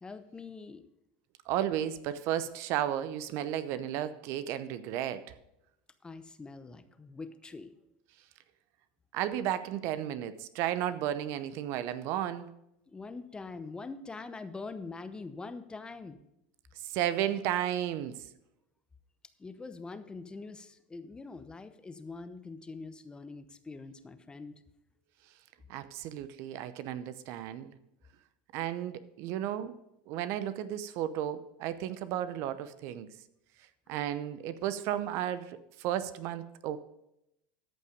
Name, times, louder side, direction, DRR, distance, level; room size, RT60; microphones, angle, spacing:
voice 1, 0.0-0.9 6.0-7.8 12.9-16.2 19.4-24.6, left 3 dB, 15° left, 0.8 m, -44 dB
voice 2, 1.5-5.3 9.1-12.5 16.8-18.2 25.7-27.7 28.5-29.7 30.1-33.1 33.9-36.8, right 11 dB, 60° right, 0.7 m, -33 dB
13.5 x 5.5 x 5.1 m
hypercardioid pair, 95°, 5 cm